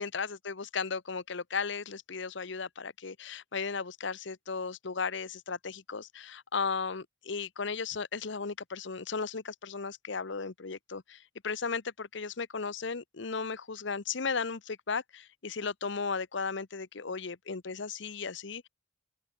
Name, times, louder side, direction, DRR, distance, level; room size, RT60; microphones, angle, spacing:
voice 1, 0.0-18.7, left 5 dB, 65° left, 0.8 m, -35 dB
open air
head